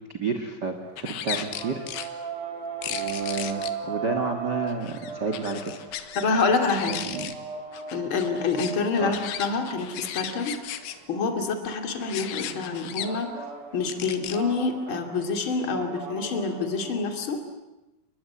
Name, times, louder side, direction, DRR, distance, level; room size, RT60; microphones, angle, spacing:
voice 1, 0.1-1.9 2.9-5.7 6.9-7.4 9.0-9.1, right 4 dB, 80° right, 6 dB, 0.9 m, -30 dB
sound 1, 0.7-17.4, right 5 dB, 45° right, 5.6 m, -38 dB
sound 2, 1.0-2.1 2.8-3.7 4.7-6.3 6.5-7.3 7.7-11.0 12.0-13.1 13.9-14.4, left 11 dB, 80° left, 3.5 m, -36 dB
voice 2, 6.2-7.0 7.9-10.6 11.1-13.3 13.7-17.4, left 4 dB, 35° left, 5 dB, 2.9 m, -27 dB
29.5 x 21.0 x 8.6 m, 0.97 s
omnidirectional pair, 5.1 m